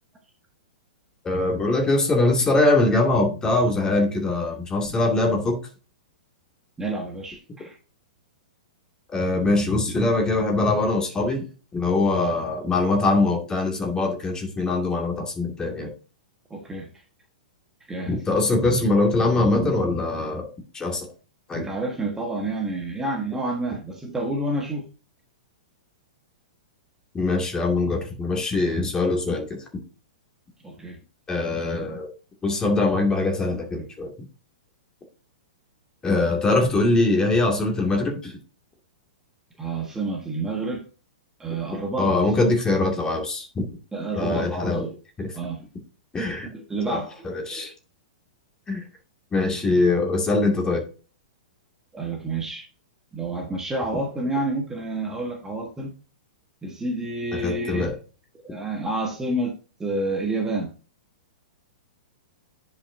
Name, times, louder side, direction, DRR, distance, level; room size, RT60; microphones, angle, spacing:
voice 1, 1.2-5.6 9.1-11.4 11.7-15.9 18.1-21.1 21.5-21.7 27.1-29.6 31.3-32.1 32.4-34.1 36.0-38.3 42.0-43.7 44.2-44.9 45.2-45.3 46.1-46.5 46.9-47.0 47.2-47.7 48.7-48.8 49.3-50.8 57.4-57.9, left 2 dB, 15° left, 2 dB, 2.2 m, -22 dB
voice 2, 6.8-7.8 16.5-17.0 17.9-18.1 21.5-24.9 30.6-31.0 39.6-40.8 41.4-42.1 43.9-44.9 45.3-45.6 46.5-47.7 51.9-52.7 53.1-55.9 56.6-57.9 58.4-59.5 59.8-60.7, right 2 dB, 10° right, 1 dB, 1.3 m, -29 dB
10.0 x 5.4 x 2.7 m, 0.35 s
figure-of-eight pair, 110°, 4 cm